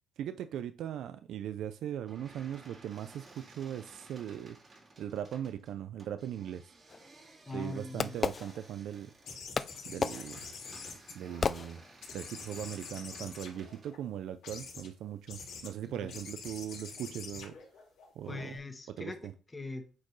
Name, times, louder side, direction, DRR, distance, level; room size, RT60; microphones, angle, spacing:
voice 1, 0.2-4.6 5.0-6.7 7.5-9.1 9.9-10.4 11.1-11.8 12.1-17.6 18.2-18.6 19.0-19.1, right 10 dB, 80° right, 0.4 m, -39 dB
sound 1, 2.0-13.9, right 2 dB, 40° right, 2.0 m, -56 dB
Fireworks, 6.9-9.1 9.6-12.3, left 5 dB, 40° left, 0.4 m, -36 dB
voice 2, 7.5-8.1 15.8-16.1 18.3-20.1, left 2 dB, 25° left, 1.5 m, -42 dB
sound 2, 9.2-11.7 12.0-14.0 14.4-14.9 15.3-15.7 16.1-18.6, left 5 dB, 85° left, 2.9 m, -46 dB
8.2 x 4.4 x 3.2 m
cardioid pair, 90°, 0 cm